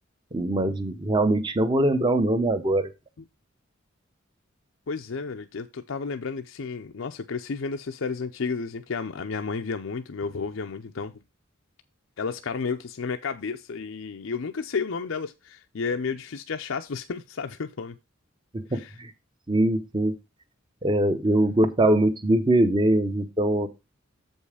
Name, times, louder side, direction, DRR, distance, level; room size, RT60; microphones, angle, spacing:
voice 1, 0.3-2.9 18.5-19.1 19.5-20.1 20.8-23.7, right 1 dB, 25° right, 0.7 m, -22 dB
voice 2, 4.9-11.1 12.2-18.0 18.7-19.0, left 5 dB, 75° left, 0.6 m, -32 dB
7.4 x 5.4 x 4.8 m
head